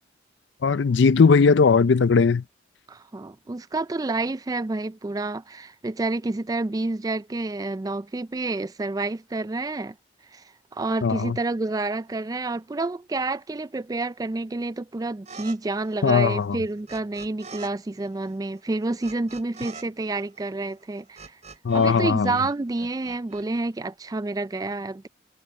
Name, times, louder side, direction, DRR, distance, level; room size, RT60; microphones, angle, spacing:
voice 1, 0.6-2.4 11.0-11.4 16.0-16.6 21.6-22.3, left 5 dB, 65° left, 0.5 m, -18 dB
voice 2, 2.9-9.9 10.3-10.4 10.7-21.3 21.7-25.1, right 2 dB, 20° right, 0.3 m, -29 dB
sound 1, 15.3-15.6 15.8-17.7 18.0-22.0 22.2-23.4, right 4 dB, 35° right, 4.2 m, -44 dB
head